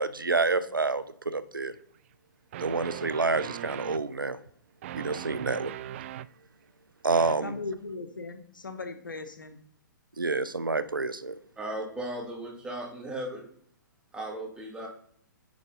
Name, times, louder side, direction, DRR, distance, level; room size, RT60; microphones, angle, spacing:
voice 1, 0.0-1.7 2.6-4.4 4.9-5.7 7.0-7.5 10.2-11.4, right 3 dB, 80° right, 15 dB, 0.6 m, -28 dB
sound 1, 1.7-1.8 2.5-4.0 4.8-6.3 7.1-7.4, right 12 dB, 40° right, 0.3 m, -39 dB
voice 2, 7.4-9.6, left 3 dB, 75° left, 8 dB, 1.2 m, -38 dB
voice 3, 11.6-13.4 14.1-14.9, right 1 dB, 10° right, 0 dB, 2.3 m, -36 dB
9.9 x 5.3 x 3.9 m, 0.63 s
figure-of-eight pair, 120°, 11 cm